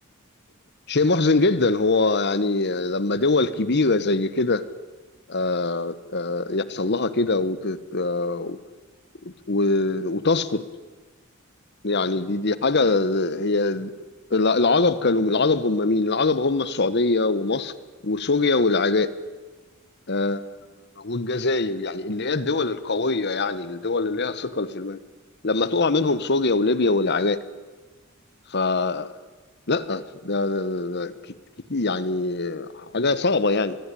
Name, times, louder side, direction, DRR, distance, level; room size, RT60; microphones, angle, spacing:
voice 1, 0.9-4.6 5.3-8.6 9.5-10.6 11.8-13.9 14.3-17.7 18.0-19.1 20.1-20.5 21.0-25.0 25.4-27.4 28.5-29.1 29.7-31.1 31.7-33.8, left 3 dB, 55° left, 1.3 m, -23 dB
24.5 x 22.0 x 10.0 m
head